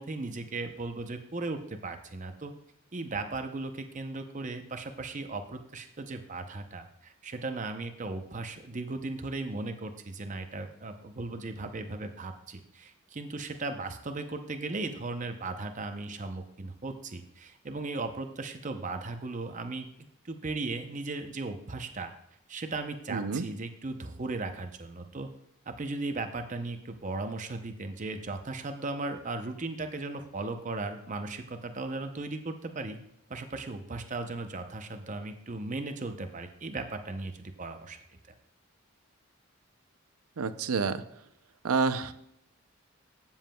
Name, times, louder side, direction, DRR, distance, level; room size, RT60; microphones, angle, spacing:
voice 1, 0.0-2.5 2.9-19.9 20.2-22.1 22.5-25.3 25.7-33.0 33.3-38.0, right 3 dB, 35° right, 7 dB, 0.6 m, -37 dB
voice 2, 23.1-23.4 40.4-41.0 41.6-42.1, right 4 dB, 80° right, 11 dB, 0.5 m, -28 dB
15.0 x 7.2 x 2.3 m, 0.75 s
head